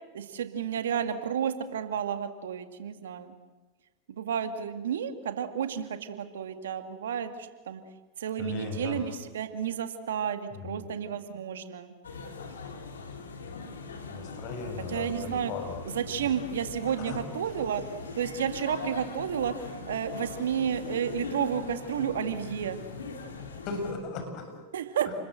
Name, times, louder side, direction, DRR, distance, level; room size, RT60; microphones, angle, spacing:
voice 1, 0.1-3.3 4.1-7.8 8.2-11.9 14.9-15.5 15.9-17.8 18.2-19.5 19.9-22.8 24.7-25.1, right 8 dB, 80° right, 8 dB, 2.0 m, -31 dB
voice 2, 8.4-9.1 10.5-10.9 14.1-15.8 16.1-16.3 17.0-17.2 23.6-24.6 25.1-25.2, left 4 dB, 50° left, 5 dB, 7.0 m, -37 dB
sound 1, 12.0-23.9, left 4 dB, 85° left, 3.7 m, -41 dB
30.0 x 21.0 x 7.7 m, 1.2 s
hypercardioid pair, 95°, 0 cm